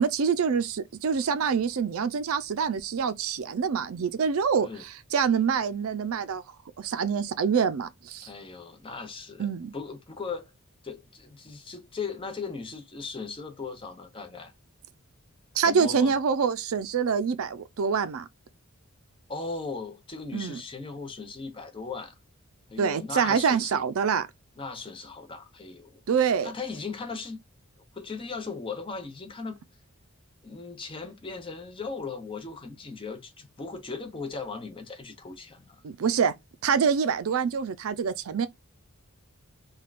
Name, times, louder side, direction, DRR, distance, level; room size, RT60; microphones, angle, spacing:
voice 1, 0.0-4.7 5.1-6.4 6.8-8.3 9.4-9.7 15.6-18.3 20.3-20.6 22.8-24.3 26.1-26.5 35.8-36.3 36.6-38.5, right 6 dB, 75° right, 0.4 m, -26 dB
voice 2, 8.2-9.5 9.7-10.5 10.8-14.5 15.6-16.1 19.3-22.1 22.7-23.8 24.6-26.0 26.4-27.4 27.9-29.6 30.4-35.8, left 4 dB, 25° left, 0.6 m, -38 dB
3.5 x 2.3 x 2.3 m
head